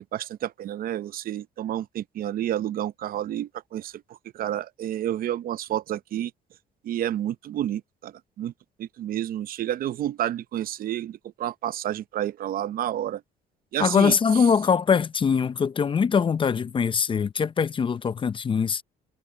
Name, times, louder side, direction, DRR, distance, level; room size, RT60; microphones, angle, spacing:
voice 1, 0.0-3.9 4.3-6.3 6.8-8.5 8.8-13.2 13.7-14.1, right 12 dB, 60° right, 0.7 m, -30 dB
voice 2, 13.8-18.8, left 6 dB, 30° left, 0.7 m, -22 dB
cardioid pair, 110°, 17 cm